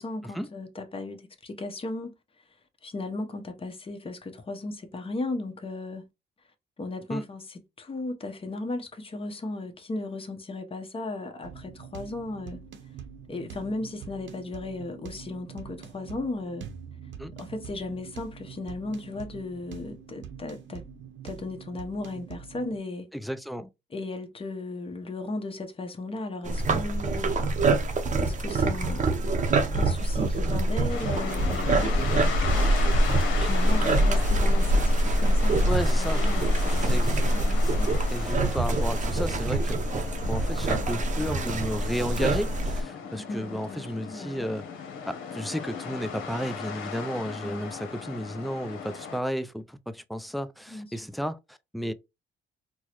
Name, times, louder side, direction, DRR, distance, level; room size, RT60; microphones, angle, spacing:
voice 1, 0.0-2.2 2.8-6.1 6.8-12.6 13.3-16.7 17.4-20.8 21.2-23.1 23.9-27.4 28.1-32.2 33.1-38.0 43.1-44.6 47.4-47.8 50.7-51.0, left 2 dB, 30° left, 0.9 m, -36 dB
sound 1, 11.4-22.8, right 7 dB, 70° right, 0.8 m, -44 dB
voice 2, 23.1-23.7 35.7-36.2 36.8-37.2 37.6-37.7 38.1-39.8 40.3-44.6 45.0-51.9, equal, ahead, 0.3 m, -33 dB
sound 2, 26.4-42.8, right 1 dB, 40° right, 0.7 m, -24 dB
sound 3, 30.9-49.2, left 6 dB, 85° left, 0.8 m, -37 dB
4.4 x 2.1 x 2.9 m
cardioid pair, 90°, 20 cm